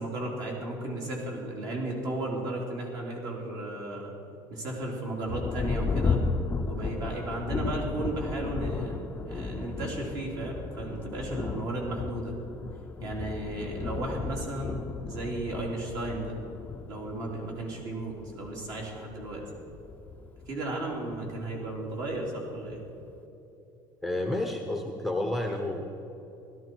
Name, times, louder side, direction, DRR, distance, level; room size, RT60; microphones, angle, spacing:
voice 1, 0.0-4.1 4.5-6.2 6.6-12.3 13.0-16.3 16.9-19.4 20.5-22.8, right 2 dB, 45° right, -1 dB, 3.3 m, -34 dB
Thunder, 5.3-21.3 22.1-22.2 22.7-23.2, left 4 dB, 20° left, 0.5 m, -34 dB
voice 2, 24.0-25.9, left 1 dB, 5° right, 2 dB, 0.9 m, -30 dB
16.5 x 13.0 x 4.6 m, 3.0 s
cardioid pair, 150°, 9 cm